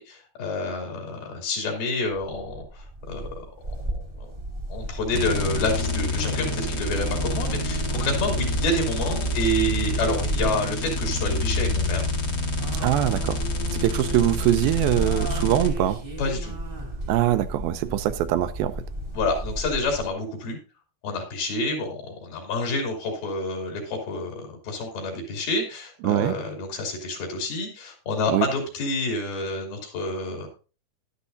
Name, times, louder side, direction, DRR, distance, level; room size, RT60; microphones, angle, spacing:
voice 1, 0.0-3.3 4.2-4.3 4.7-12.1 16.2-16.5 19.1-20.6 21.0-30.5, left 2 dB, 75° left, 1 dB, 4.7 m, -28 dB
sound 1, 2.1-20.1, right 1 dB, 30° right, 1.1 m, -34 dB
sound 2, 5.1-15.7, left 1 dB, 50° left, 1.2 m, -27 dB
voice 2, 12.8-13.4 13.7-16.0 17.1-18.7 26.0-26.4 28.3-28.5, right 13 dB, 80° right, 11 dB, 2.5 m, -23 dB
12.0 x 11.5 x 2.6 m, 0.34 s
omnidirectional pair, 4.3 m